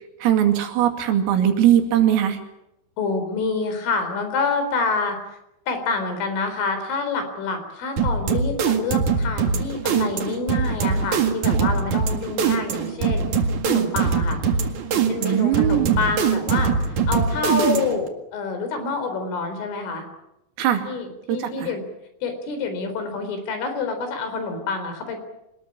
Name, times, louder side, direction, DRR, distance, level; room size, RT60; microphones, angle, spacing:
voice 1, 0.2-2.4 15.2-16.1 20.6-20.9 21.3-21.7, right 10 dB, 80° right, 5 dB, 5.0 m, -20 dB
voice 2, 3.0-5.4 5.7-13.3 13.7-14.4 15.1-20.0 20.9-21.8 22.2-25.2, left 4 dB, 70° left, 7 dB, 6.6 m, -27 dB
sound 1, 8.0-18.1, right 6 dB, 50° right, 2.4 m, -22 dB
24.5 x 20.5 x 8.8 m, 0.85 s
omnidirectional pair, 5.9 m